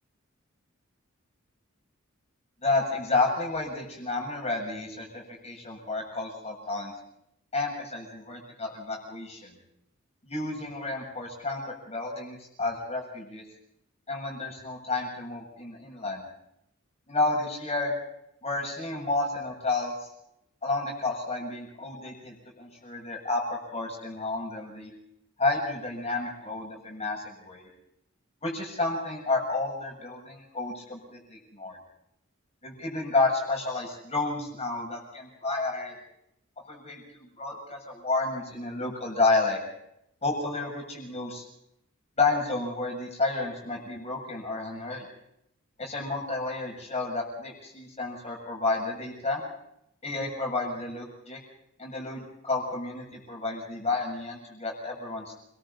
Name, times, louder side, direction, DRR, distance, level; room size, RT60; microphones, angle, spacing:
voice 1, 2.6-6.9 7.5-9.5 10.2-13.4 14.1-16.2 17.1-17.9 18.4-19.9 20.6-24.9 25.4-27.7 28.4-31.8 32.6-36.0 36.7-39.6 40.2-41.4 42.2-45.0 45.8-49.4 50.0-51.4 51.8-55.3, left 3 dB, 30° left, 0 dB, 7.3 m, -31 dB
29.5 x 22.0 x 4.2 m, 0.79 s
head